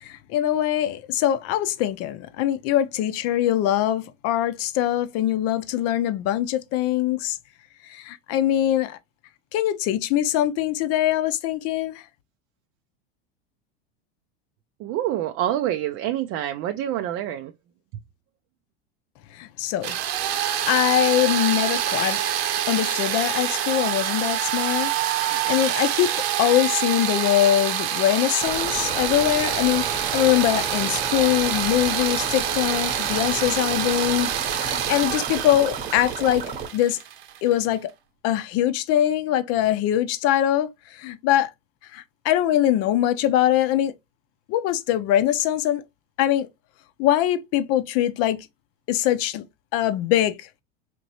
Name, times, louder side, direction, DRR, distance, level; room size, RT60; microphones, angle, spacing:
voice 1, 0.0-7.4 7.9-9.0 9.5-12.0 19.3-20.0 20.2-20.4 20.7-22.2 22.7-36.4 36.7-37.0 37.4-37.9 38.2-41.5 41.9-43.9 44.5-45.8 46.2-46.5 47.0-48.5 48.9-49.4 49.7-50.5, left 12 dB, 50° left, 0.6 m, -23 dB
voice 2, 14.8-17.5, right 12 dB, 45° right, 0.4 m, -26 dB
sound 1, 19.8-37.5, right 10 dB, 75° right, 0.9 m, -26 dB
sound 2, 28.4-36.7, right 5 dB, 25° right, 0.9 m, -33 dB
4.2 x 3.0 x 2.9 m
supercardioid pair, 110°, 31 cm